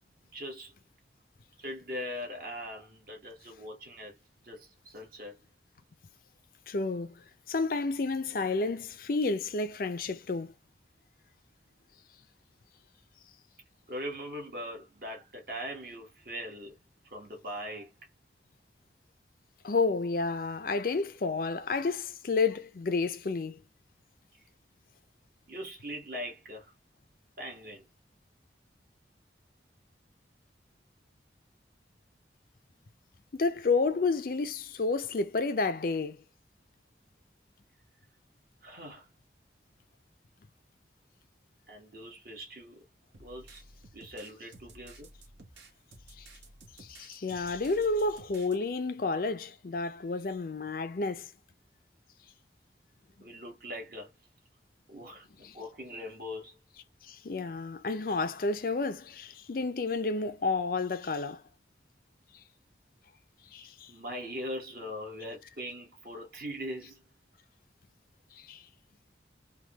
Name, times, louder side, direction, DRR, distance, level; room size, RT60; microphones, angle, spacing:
voice 1, 0.3-0.7 1.6-4.1 4.4-5.4 8.3-8.4 13.9-16.7 17.0-17.9 25.5-26.7 27.4-27.9 38.6-39.1 41.7-42.8 43.2-43.6 43.9-45.1 53.2-54.1 54.9-55.3 55.5-56.6 63.9-67.0, equal, 55° right, 1.2 m, -41 dB
voice 2, 6.7-10.5 19.6-23.6 33.3-36.2 46.2-46.3 46.8-51.3 55.4-55.6 57.0-61.4 63.5-63.9 68.3-68.6, left 3 dB, 50° left, 0.5 m, -30 dB
sound 1, 43.1-48.6, right 2 dB, 80° right, 1.0 m, -53 dB
3.4 x 2.3 x 2.9 m
head